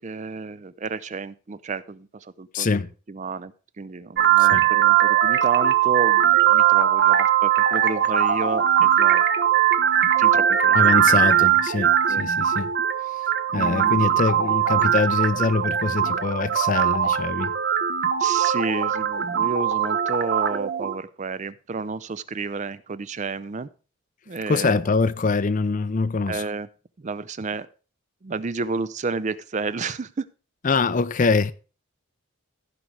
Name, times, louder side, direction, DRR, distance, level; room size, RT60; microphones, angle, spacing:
voice 1, 0.0-2.7 3.1-9.3 10.2-10.9 12.1-12.3 13.5-14.0 18.2-23.7 24.3-24.8 26.3-26.7 27.0-27.7 28.2-30.3, right 4 dB, 35° right, 0.4 m, -31 dB
voice 2, 2.5-2.9 4.4-4.7 10.7-12.7 13.1-13.2 13.5-17.6 24.5-26.5 30.6-31.5, left 4 dB, 35° left, 0.4 m, -24 dB
sound 1, 4.2-20.9, right 10 dB, 50° right, 0.8 m, -20 dB
15.0 x 5.1 x 4.6 m
head